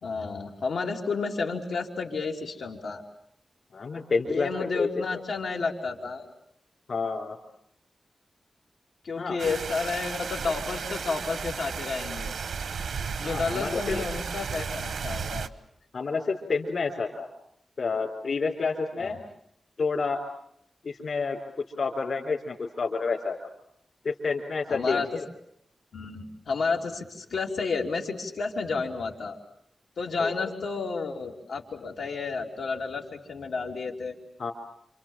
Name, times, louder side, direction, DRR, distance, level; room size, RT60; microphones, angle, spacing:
voice 1, 0.0-3.0 4.3-6.3 9.0-12.3 13.2-15.5 19.0-19.2 24.7-25.1 25.9-29.4 30.0-34.2, left 4 dB, 85° left, 1 dB, 3.5 m, -31 dB
voice 2, 3.7-4.9 6.9-7.4 9.2-9.4 13.2-14.0 15.9-17.3 17.8-19.2 19.8-20.2 20.8-21.4 21.8-23.4 24.0-25.0 30.2-30.3 34.4-34.5, left 4 dB, 55° left, -3 dB, 3.8 m, -29 dB
sound 1, 9.4-15.5, right 6 dB, 90° right, 1.0 m, -34 dB
28.5 x 27.0 x 7.5 m, 0.72 s
wide cardioid pair, 175°, 0 cm